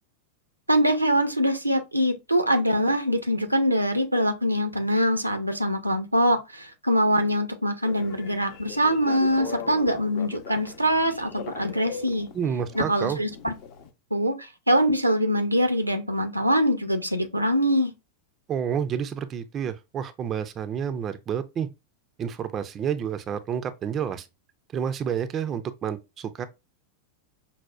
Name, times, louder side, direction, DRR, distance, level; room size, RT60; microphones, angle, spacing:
voice 1, 0.7-12.3 12.7-13.5 14.1-17.9, equal, 85° right, 0.5 m, -23 dB
Telephone, 7.8-13.9, left 6 dB, 45° left, 0.5 m, -39 dB
voice 2, 12.3-13.2 18.5-21.7 22.2-24.3 24.7-26.5, right 8 dB, 30° right, 0.3 m, -29 dB
5.4 x 2.1 x 2.3 m
figure-of-eight pair, 90°, 0 cm